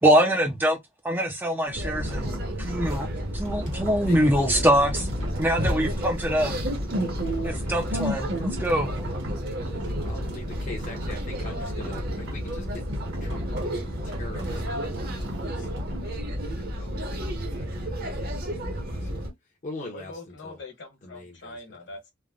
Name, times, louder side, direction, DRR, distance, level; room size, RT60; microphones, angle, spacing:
voice 1, 0.0-0.8 1.0-3.1 3.3-5.1 5.4-6.5 7.4-9.1, equal, 10° right, 0.4 m, -23 dB
sound 1, 1.7-19.3, equal, 45° right, 0.8 m, -31 dB
sound 2, 1.7-16.0, right 1 dB, 60° right, 1.1 m, -40 dB
voice 2, 4.1-4.7 7.1-7.7 9.5-12.9 13.2-15.7 16.0-19.3 19.6-20.6 21.0-21.6, left 2 dB, 35° left, 0.7 m, -43 dB
voice 3, 19.9-22.1, left 2 dB, 60° left, 1.2 m, -42 dB
3.3 x 2.1 x 2.3 m
head